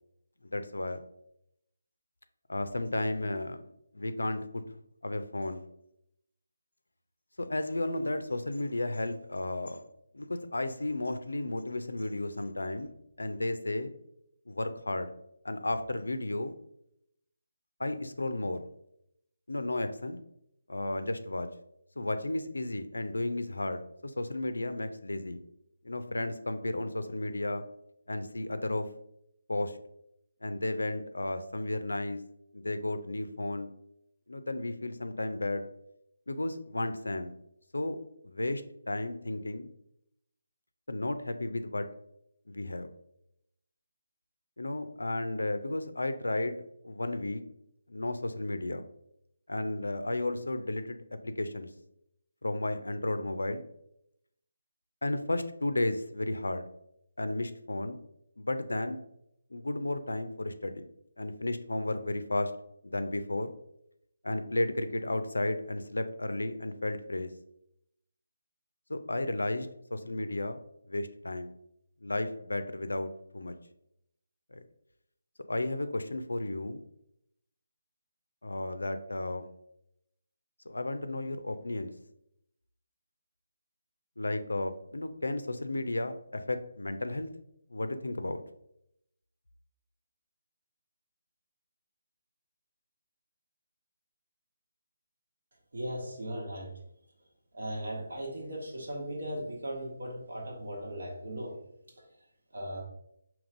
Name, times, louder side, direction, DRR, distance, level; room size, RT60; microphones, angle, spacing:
voice 1, 0.4-1.0 2.5-5.7 7.4-9.8 10.1-12.9 13.2-13.9 14.5-15.1 15.4-16.5 17.8-18.6 19.5-20.2 20.7-21.5 22.0-25.4 25.8-27.6 28.1-28.9 29.5-29.8 30.4-32.2 32.5-33.7 34.3-35.7 36.3-37.3 37.7-38.0 38.2-39.7 40.9-41.9 42.5-42.9 44.6-47.4 47.9-48.8 49.5-51.0 51.2-51.7 52.4-53.6 55.0-56.7 57.2-58.0 58.4-59.0 59.5-60.9 61.2-62.5 62.8-63.5 64.2-67.3 68.9-70.6 70.9-71.5 72.0-73.5 74.5-74.6 75.5-76.8 78.4-79.5 80.7-81.9 84.2-87.3 87.7-88.4, left 2 dB, 80° left, 10 dB, 0.4 m, -33 dB
voice 2, 95.7-96.8 97.5-101.6 101.9-102.0 102.5-102.8, right 1 dB, 70° right, -1 dB, 1.3 m, -38 dB
5.1 x 2.9 x 2.5 m, 0.78 s
figure-of-eight pair, 155°, 0 cm